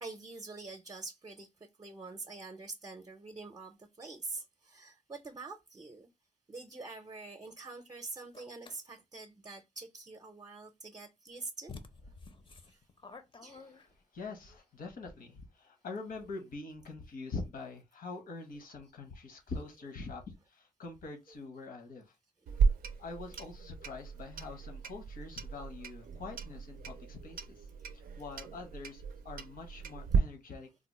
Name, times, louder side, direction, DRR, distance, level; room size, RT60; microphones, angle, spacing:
voice 1, 0.0-6.1 6.5-11.7 12.0-12.2 12.5-12.9 13.4-13.9 19.5-19.9 21.3-21.4 22.4-22.8 23.3-23.4 24.0-24.1 27.3-27.4, right 3 dB, 30° right, 0.6 m, -46 dB
sound 1, 8.3-8.8 11.0-11.1 11.7-14.2, left 4 dB, 35° left, 0.6 m, -50 dB
voice 2, 14.1-20.2 20.5-22.1 23.0-30.7, left 3 dB, 75° left, 1.0 m, -44 dB
Clock, 22.5-30.2, right 6 dB, 80° right, 0.4 m, -35 dB
3.8 x 2.0 x 3.0 m
cardioid pair, 75°, 15 cm